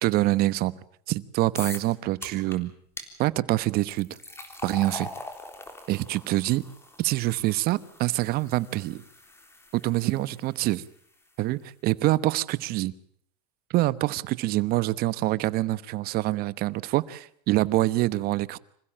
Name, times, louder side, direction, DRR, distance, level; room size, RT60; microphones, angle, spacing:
voice 1, 0.0-0.7 1.1-2.7 3.2-4.1 4.6-5.1 5.9-6.6 7.0-9.0 9.7-10.8 11.4-12.9 13.7-18.6, right 17 dB, 50° right, 17 dB, 1.1 m, -25 dB
sound 1, 1.6-1.9 2.2-2.6 3.0-3.1 3.8-10.9, left 2 dB, 10° left, 3.7 m, -42 dB
26.5 x 15.5 x 8.8 m, 0.65 s
supercardioid pair, 120°, 20 cm